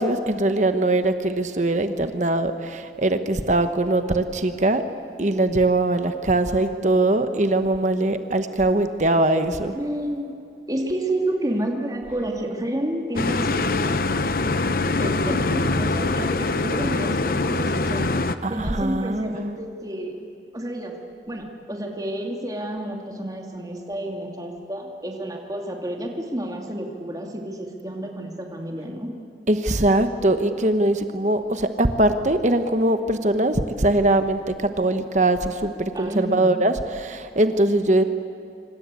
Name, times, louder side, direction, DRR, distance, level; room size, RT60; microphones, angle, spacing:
voice 1, 0.0-4.8 5.2-9.7 18.4-19.4 29.5-38.0, right 1 dB, 40° right, 8 dB, 1.1 m, -21 dB
voice 2, 9.7-10.3 10.7-14.5 14.9-18.1 18.5-20.2 20.5-20.9 21.3-29.1 35.9-36.5, right 1 dB, 20° right, 2 dB, 2.7 m, -30 dB
sound 1, 13.2-18.4, left 3 dB, 50° left, 0.9 m, -23 dB
26.5 x 25.5 x 8.4 m, 2.5 s
head